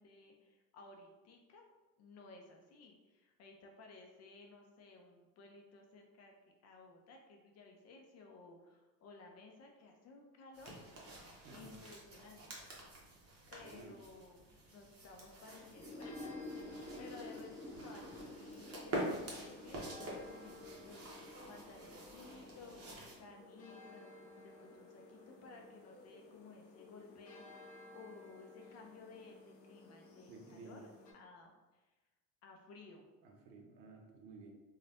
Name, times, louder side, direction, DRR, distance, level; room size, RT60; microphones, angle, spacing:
voice 1, 0.0-1.7 2.0-6.4 6.6-11.0 11.5-12.6 13.5-27.4 27.9-31.8 32.4-33.1, left 3 dB, 35° left, 2 dB, 0.5 m, -57 dB
sound 1, 10.5-23.2, right 1 dB, 30° right, 0.9 m, -47 dB
voice 2, 11.4-11.8 13.6-14.0 30.3-30.8 33.2-34.5, right 3 dB, 70° right, 2 dB, 0.7 m, -54 dB
sound 2, 15.4-31.1, left 2 dB, 90° left, 0.6 m, -56 dB
sound 3, 15.6-23.2, left 1 dB, 5° right, 1.4 m, -51 dB
3.1 x 2.3 x 2.5 m, 1.1 s
hypercardioid pair, 80°, 48 cm